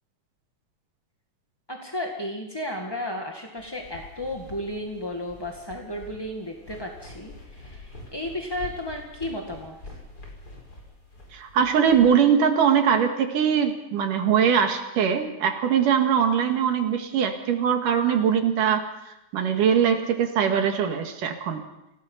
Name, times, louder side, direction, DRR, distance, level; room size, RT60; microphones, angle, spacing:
voice 1, 1.7-10.0, left 1 dB, 10° left, 0 dB, 1.1 m, -33 dB
sound 1, 3.6-12.1, left 1 dB, 30° left, 5.6 m, -45 dB
voice 2, 11.3-21.6, right 7 dB, 90° right, 5 dB, 3.4 m, -22 dB
27.0 x 17.5 x 5.6 m, 0.90 s
omnidirectional pair, 3.6 m